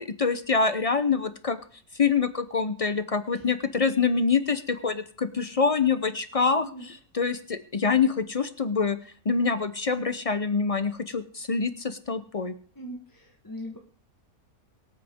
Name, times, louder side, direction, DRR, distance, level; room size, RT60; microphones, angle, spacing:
voice 1, 0.0-1.6 2.0-6.6 7.1-9.0 9.2-12.5, left 5 dB, 50° left, 11 dB, 0.4 m, -25 dB
voice 2, 6.6-6.9 12.7-13.8, equal, 15° left, 0 dB, 1.2 m, -40 dB
23.5 x 8.9 x 3.6 m, 0.43 s
omnidirectional pair, 1.6 m